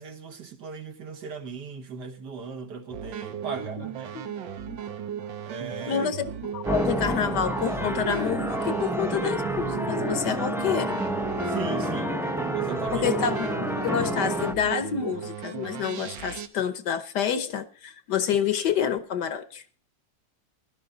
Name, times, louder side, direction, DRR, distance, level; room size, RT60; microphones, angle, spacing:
voice 1, 0.0-4.2 5.5-6.1 11.5-12.2 12.5-13.1, right 5 dB, 65° right, 2.0 m, -38 dB
sound 1, 2.9-16.5, right 9 dB, 80° right, 1.7 m, -36 dB
voice 2, 5.9-11.0 12.9-19.6, left 8 dB, 65° left, 1.5 m, -28 dB
sound 2, 6.6-14.5, right 1 dB, 5° right, 0.4 m, -29 dB
16.5 x 12.0 x 3.9 m
omnidirectional pair, 2.0 m